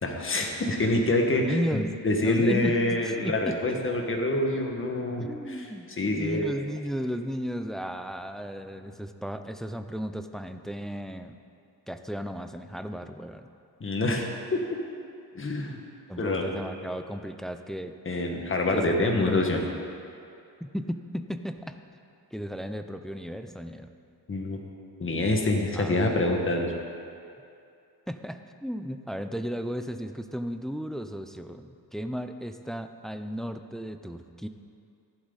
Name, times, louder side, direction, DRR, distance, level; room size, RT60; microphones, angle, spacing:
voice 1, 0.0-5.7 6.0-6.5 13.8-14.6 15.4-15.8 16.2-16.5 18.1-19.6 24.3-24.6 25.0-26.7, left 2 dB, 35° left, 2 dB, 1.7 m, -26 dB
voice 2, 1.3-1.9 2.2-3.8 5.2-11.4 11.9-13.5 16.1-18.0 18.8-19.6 20.6-21.8 22.3-23.9 25.7-25.9 28.1-34.5, equal, ahead, 8 dB, 0.5 m, -34 dB
14.5 x 11.5 x 4.1 m, 2.5 s
cardioid pair, 110°, 38 cm